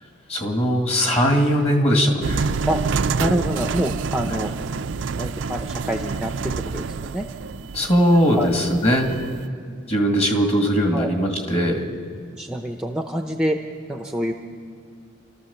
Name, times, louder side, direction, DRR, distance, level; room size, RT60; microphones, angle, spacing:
voice 1, 0.3-2.5 7.7-9.1 9.9-11.9, equal, 30° left, 3 dB, 2.1 m, -20 dB
sound 1, 2.2-9.5, right 5 dB, 65° right, 0.4 m, -27 dB
voice 2, 3.2-4.5 5.2-7.3 8.3-8.5 10.9-11.1 12.4-13.6 13.9-14.3, equal, 5° right, 4 dB, 0.7 m, -26 dB
29.0 x 13.0 x 7.1 m, 2.3 s
head